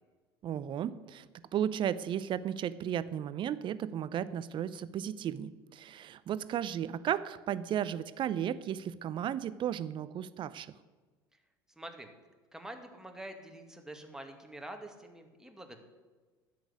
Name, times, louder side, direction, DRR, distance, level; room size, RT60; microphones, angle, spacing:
voice 1, 0.4-1.3 1.5-10.7, right 10 dB, 40° right, 16 dB, 0.7 m, -34 dB
voice 2, 11.8-12.1 12.5-15.8, right 1 dB, 5° right, 4 dB, 2.2 m, -46 dB
10.5 x 8.7 x 9.5 m, 1.3 s
hypercardioid pair, 70°, 12 cm